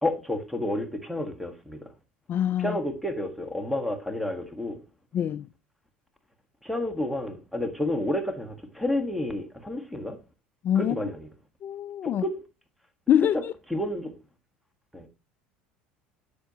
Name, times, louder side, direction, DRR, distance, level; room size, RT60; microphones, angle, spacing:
voice 1, 0.0-1.9 2.6-4.8 6.6-10.2 10.8-11.3 12.0-12.4 13.7-14.1 14.9-15.1, left 1 dB, ahead, 1.5 m, -30 dB
voice 2, 2.3-2.8 5.1-5.5 10.6-11.0 11.6-12.2 13.1-13.5, left 10 dB, 45° left, 0.4 m, -24 dB
9.8 x 6.8 x 2.9 m
hypercardioid pair, 85°, 5 cm